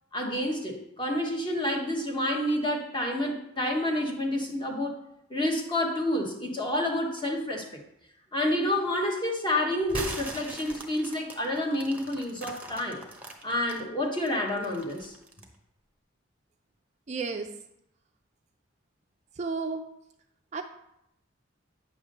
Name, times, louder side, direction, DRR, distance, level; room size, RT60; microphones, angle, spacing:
voice 1, 0.1-5.0 5.3-7.8 8.3-13.0 13.4-15.1, left 1 dB, 25° left, 1 dB, 1.1 m, -29 dB
sound 1, 9.8-13.8 14.3-15.6, right 2 dB, 5° right, 0.9 m, -40 dB
voice 2, 17.1-17.5 19.3-19.9 20.5-20.6, right 4 dB, 35° right, 6 dB, 0.4 m, -32 dB
9.1 x 3.6 x 6.5 m, 0.82 s
head